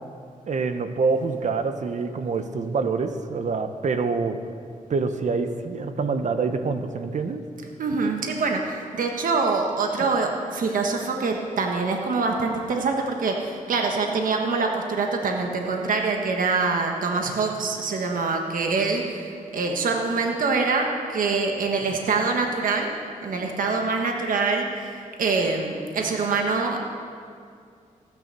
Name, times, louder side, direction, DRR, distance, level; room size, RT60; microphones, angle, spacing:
voice 1, 0.5-4.4 4.9-7.4, right 4 dB, 60° right, 8 dB, 1.0 m, -26 dB
voice 2, 7.8-22.9 23.2-24.9 25.2-26.8, right 4 dB, 75° right, 2 dB, 1.4 m, -25 dB
15.0 x 9.7 x 6.9 m, 2.3 s
cardioid pair, 85°, 14 cm